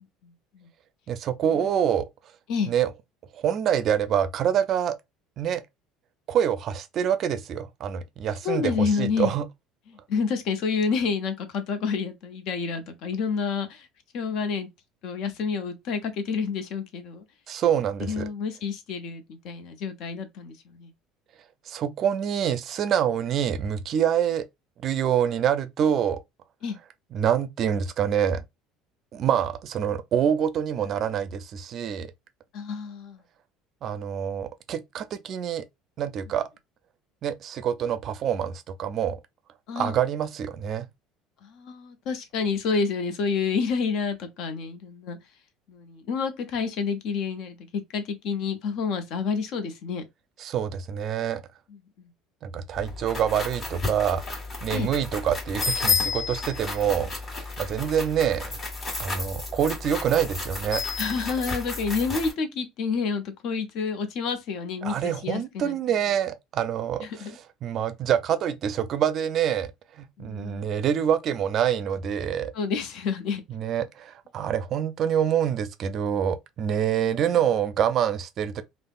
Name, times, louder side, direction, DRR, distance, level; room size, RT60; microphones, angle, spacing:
voice 1, 1.1-2.1 2.7-2.9 3.3-5.0 5.4-5.6 6.3-9.4 17.5-18.3 21.7-24.5 24.8-26.2 27.1-28.4 29.1-32.1 33.8-35.6 36.0-36.5 37.2-39.2 39.8-40.9 50.4-51.4 52.4-54.2 54.6-57.1 57.6-58.5 59.0-60.8 64.8-72.5 73.5-78.6, right 9 dB, 50° right, 0.4 m, -26 dB
voice 2, 8.4-9.3 10.1-13.9 14.1-14.7 15.0-17.2 18.0-20.9 26.6-26.8 32.5-33.2 39.7-39.9 41.4-45.2 45.7-50.0 52.0-52.1 54.7-54.9 61.0-65.8 67.0-67.4 70.2-70.7 72.5-73.4 76.9-77.1, left 5 dB, 60° left, 0.6 m, -29 dB
sound 1, 52.7-62.3, left 4 dB, 30° left, 1.6 m, -31 dB
3.2 x 2.0 x 2.4 m
hypercardioid pair, 65°, 0 cm